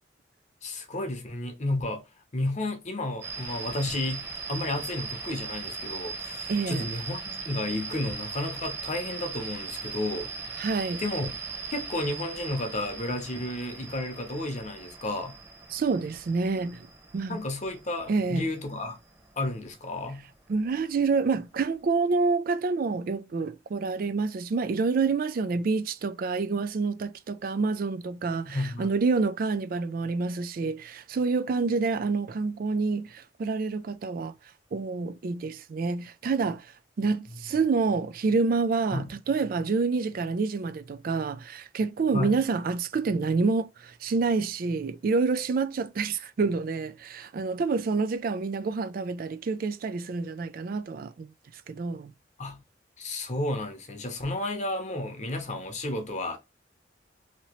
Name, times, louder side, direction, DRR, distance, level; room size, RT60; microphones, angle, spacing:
voice 1, 0.6-2.0 2.3-10.3 11.0-11.4 11.7-15.4 17.3-19.0 19.4-20.3 28.5-28.9 38.9-39.1 42.1-42.4 52.4-52.6 53.0-56.4, left 2 dB, 40° left, 0.8 m, -32 dB
sound 1, 3.2-19.8, right 4 dB, 15° right, 1.1 m, -39 dB
voice 2, 6.5-6.9 10.6-11.0 15.7-16.9 17.1-17.4 18.1-18.5 20.5-34.3 34.7-51.3 51.7-52.1, right 4 dB, 50° right, 0.3 m, -28 dB
2.9 x 2.8 x 2.9 m
head